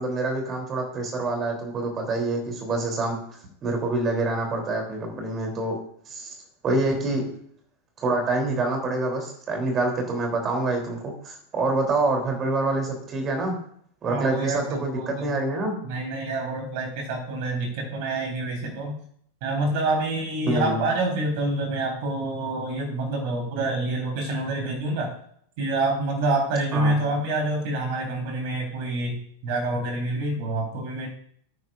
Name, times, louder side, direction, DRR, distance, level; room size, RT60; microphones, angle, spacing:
voice 1, 0.0-3.2 3.6-5.8 6.1-6.4 6.6-7.3 8.0-13.6 14.0-15.7 20.5-20.8 26.7-27.0, right 2 dB, 25° right, 3 dB, 3.5 m, -26 dB
voice 2, 14.1-15.3 15.8-18.9 19.4-25.1 25.6-31.1, right 2 dB, 45° right, 2 dB, 4.2 m, -27 dB
19.0 x 9.5 x 2.6 m, 0.64 s
figure-of-eight pair, 90°, 0 cm